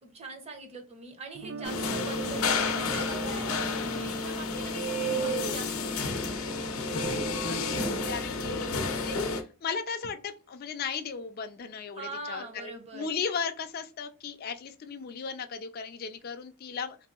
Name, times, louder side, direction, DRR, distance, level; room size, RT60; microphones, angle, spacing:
voice 1, 0.0-6.7 8.5-9.0 11.9-13.1, right 3 dB, 30° right, 4 dB, 0.7 m, -43 dB
Guitar, 1.3-7.4, right 4 dB, 70° right, 0.3 m, -47 dB
sound 1, 1.6-9.4, left 2 dB, 90° left, 0.6 m, -30 dB
voice 2, 5.1-5.6 6.9-9.2 9.6-17.0, left 5 dB, 45° left, 7 dB, 0.4 m, -36 dB
3.1 x 2.7 x 2.3 m, 0.35 s
head